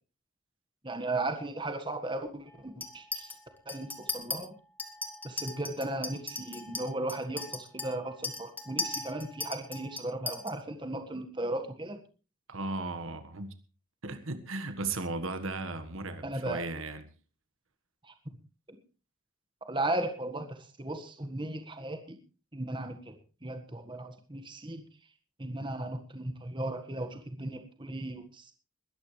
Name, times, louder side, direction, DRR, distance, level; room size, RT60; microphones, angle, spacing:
voice 1, 0.8-3.3 3.7-4.5 5.2-12.0 16.2-16.6 18.0-18.4 18.7-18.8 19.7-22.2 22.5-23.2 23.4-24.8 25.4-28.5, right 2 dB, 20° right, 1.6 m, -36 dB
Chink clink, 2.8-3.4 3.7-4.4 4.8-10.5, left 3 dB, 10° left, 1.6 m, -37 dB
voice 2, 12.5-13.5 14.0-17.0, right 3 dB, 70° right, 1.6 m, -36 dB
21.5 x 13.0 x 3.3 m
head